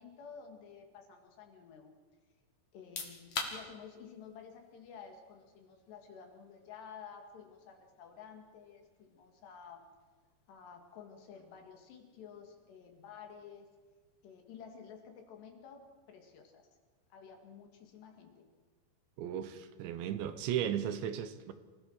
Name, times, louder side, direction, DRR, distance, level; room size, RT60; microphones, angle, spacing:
voice 1, 0.0-1.9 2.7-9.9 10.5-13.7 14.2-16.7 17.1-18.5, left 7 dB, 70° left, 4 dB, 4.3 m, -52 dB
sound 1, 2.7-15.4, left 4 dB, 45° left, 3.2 m, -50 dB
voice 2, 19.2-21.5, right 10 dB, 80° right, 11 dB, 3.4 m, -35 dB
28.0 x 16.5 x 6.6 m, 1.4 s
omnidirectional pair, 5.2 m